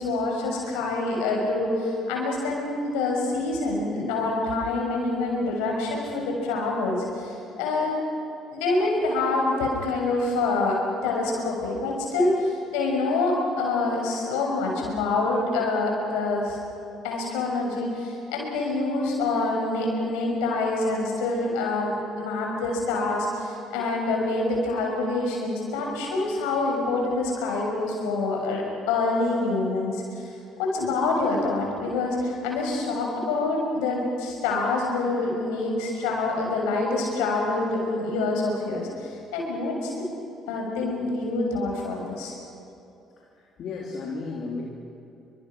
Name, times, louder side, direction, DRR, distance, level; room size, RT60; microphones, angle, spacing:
voice 1, 0.0-8.0 8.5-16.6 17.0-30.3 30.6-40.1 40.5-42.3, left 3 dB, 75° left, 0 dB, 6.7 m, -26 dB
voice 2, 43.2-44.6, left 4 dB, 55° left, -2 dB, 3.3 m, -34 dB
29.5 x 25.0 x 6.3 m, 2.7 s
hypercardioid pair, 50°, 0 cm